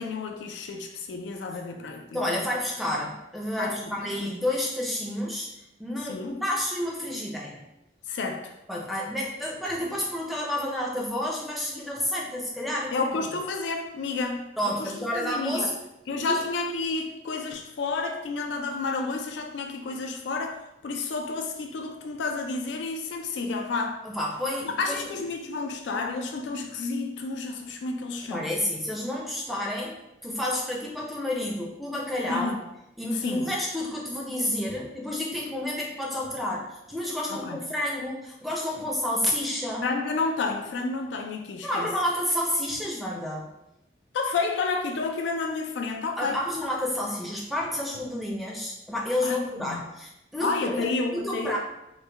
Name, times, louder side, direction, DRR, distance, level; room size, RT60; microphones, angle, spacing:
voice 1, 0.0-2.3 3.6-4.3 6.0-6.4 8.1-8.5 12.9-15.7 16.1-24.0 24.6-28.5 32.3-32.6 33.1-33.5 37.3-37.6 39.8-41.9 44.1-46.4 49.2-49.8 50.4-51.6, left 3 dB, 85° left, 4 dB, 0.4 m, -30 dB
voice 2, 2.1-5.5 5.8-7.6 8.7-12.9 14.2-14.3 14.6-15.8 16.3-16.4 24.0-25.1 28.3-32.5 33.0-39.8 41.6-43.5 46.2-51.6, left 1 dB, ahead, -3 dB, 0.5 m, -30 dB
3.1 x 2.1 x 3.3 m, 0.88 s
head